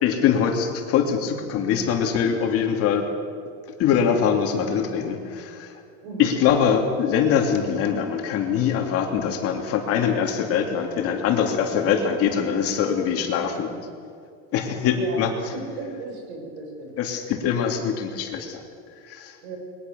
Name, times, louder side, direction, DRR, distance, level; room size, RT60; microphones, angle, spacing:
voice 1, 0.0-3.1 3.8-5.7 6.2-13.8 14.5-15.5 17.0-18.6 19.0-19.4, left 7 dB, 45° left, 3 dB, 2.8 m, -23 dB
voice 2, 15.5-16.9 19.4-19.6, right 3 dB, 80° right, 1 dB, 7.5 m, -35 dB
21.5 x 20.0 x 7.0 m, 2.3 s
supercardioid pair, 145°, 33 cm